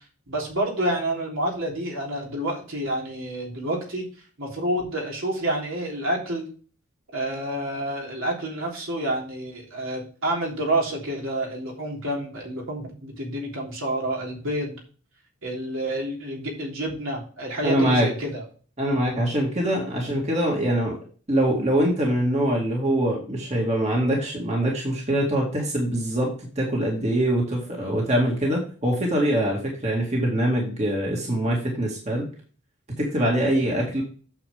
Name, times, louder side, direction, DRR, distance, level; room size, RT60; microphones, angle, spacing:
voice 1, 0.3-4.0 4.4-6.5 7.1-14.8 15.4-18.4, right 1 dB, 65° right, -1 dB, 3.4 m, -28 dB
voice 2, 17.6-18.1 18.8-21.0 21.3-32.3 33.0-34.0, right 1 dB, 30° right, -2 dB, 2.2 m, -23 dB
8.8 x 7.3 x 3.6 m, 0.40 s
head